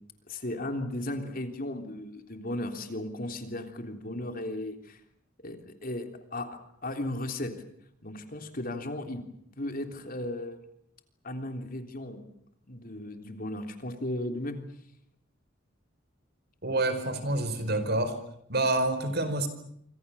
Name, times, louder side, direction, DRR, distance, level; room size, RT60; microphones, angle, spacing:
voice 1, 0.3-5.0 5.4-7.5 8.0-9.2 9.6-10.6 11.2-12.2 12.7-14.6, left 1 dB, 45° left, 6 dB, 3.4 m, -35 dB
voice 2, 16.6-18.2 18.5-19.5, right 2 dB, 55° right, 10 dB, 5.0 m, -27 dB
28.0 x 26.0 x 7.1 m, 0.72 s
head